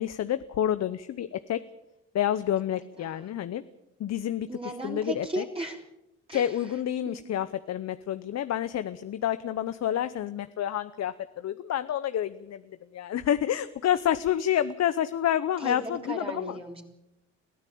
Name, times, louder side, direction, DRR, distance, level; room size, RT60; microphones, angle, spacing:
voice 1, 0.0-1.6 2.1-3.6 4.0-4.5 4.8-5.4 6.3-16.5, left 10 dB, 60° left, 13 dB, 0.9 m, -29 dB
voice 2, 2.7-3.3 4.5-5.8 6.3-6.8 7.1-7.2 15.6-16.8, right 1 dB, 20° right, 0 dB, 3.5 m, -37 dB
22.0 x 14.5 x 8.6 m, 0.87 s
cardioid pair, 90°, 30 cm